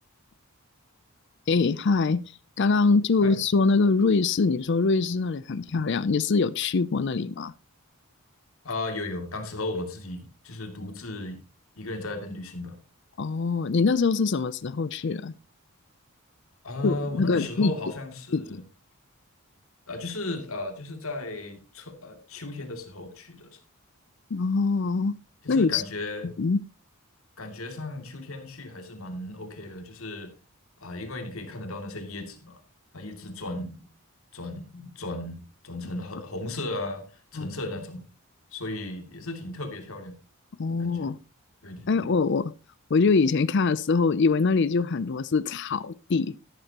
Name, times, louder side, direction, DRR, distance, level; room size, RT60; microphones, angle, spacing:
voice 1, 1.5-2.2 2.6-7.5 13.2-15.3 16.8-17.7 18.3-18.6 24.3-25.1 25.5-25.8 26.4-26.6 37.4-37.5 40.6-41.2 41.9-42.5 42.9-46.3, left 4 dB, 55° left, 0.5 m, -23 dB
voice 2, 8.6-11.4 11.8-12.8 16.6-18.6 19.9-23.6 25.4-26.3 27.4-30.3 30.8-32.6 32.9-33.9 34.3-38.0 38.5-40.1 40.8-41.1 41.6-42.1, left 2 dB, 70° left, 2.6 m, -35 dB
13.0 x 12.0 x 2.9 m
head